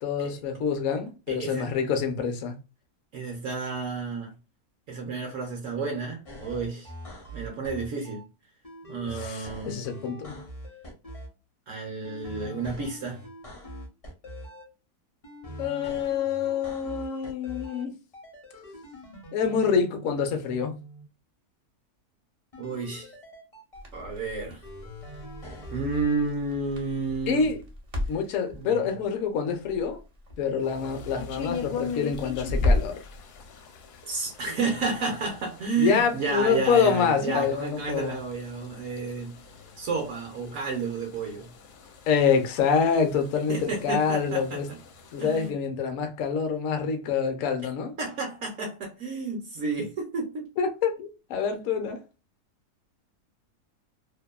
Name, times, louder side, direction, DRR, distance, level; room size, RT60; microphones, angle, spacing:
voice 1, 0.0-2.5 9.1-10.4 15.6-17.9 19.3-20.8 27.3-27.6 28.1-30.0 30.4-33.0 35.8-38.2 42.1-44.7 45.1-47.9 50.6-52.0, left 6 dB, 65° left, 0.9 m, -26 dB
voice 2, 1.3-1.7 3.1-4.4 4.9-6.9 7.3-8.3 8.9-9.8 11.7-13.2 22.6-23.1 23.9-24.6 25.7-27.5 28.5-28.9 34.1-39.4 39.8-41.5 43.5-44.6 45.2-45.6 48.0-50.5, right 4 dB, 65° right, 0.9 m, -31 dB
sound 1, 6.3-8.2 8.6-11.3 12.0-14.6 15.2-17.8 18.1-21.0 22.5-24.0 24.6-26.1, equal, 35° left, 0.5 m, -43 dB
Crackle, 23.7-33.0, left 2 dB, 40° right, 0.6 m, -33 dB
sound 2, 30.6-45.5, left 6 dB, 80° left, 1.1 m, -42 dB
2.7 x 2.2 x 2.2 m
omnidirectional pair, 1.7 m